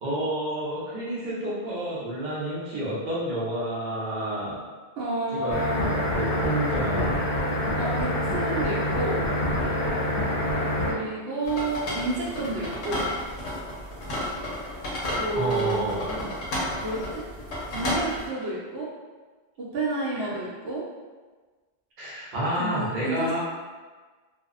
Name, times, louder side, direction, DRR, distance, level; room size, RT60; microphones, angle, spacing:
voice 1, 0.0-4.6 5.3-7.1 15.3-16.1 20.2-20.3 22.0-23.4, right 1 dB, 50° right, -8 dB, 0.7 m, -30 dB
voice 2, 5.0-5.8 7.8-9.2 10.8-13.1 15.2-16.3 16.8-17.3 17.7-18.9 19.6-20.8 22.6-23.4, right 2 dB, 85° right, -6 dB, 0.9 m, -30 dB
sound 1, 5.5-10.9, left 1 dB, 65° left, 0.7 m, -26 dB
sound 2, 11.4-18.3, left 1 dB, 85° left, 1.0 m, -32 dB
2.6 x 2.0 x 2.3 m, 1.4 s
omnidirectional pair, 1.1 m